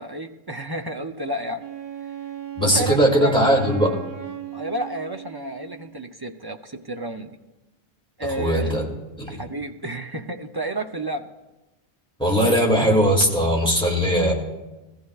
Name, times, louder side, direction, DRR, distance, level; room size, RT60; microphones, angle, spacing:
voice 1, 0.0-1.6 2.6-3.6 4.5-7.3 8.2-8.8 9.3-11.3, right 1 dB, 30° right, 5 dB, 0.5 m, -31 dB
Wind instrument woodwind instrument, 1.6-6.0, right 10 dB, 55° right, 0.8 m, -37 dB
voice 2, 2.6-4.0 8.4-8.9 9.1-9.4 12.2-14.3, equal, 5° left, -2 dB, 2.3 m, -19 dB
20.5 x 15.0 x 2.4 m, 1.1 s
omnidirectional pair, 1.1 m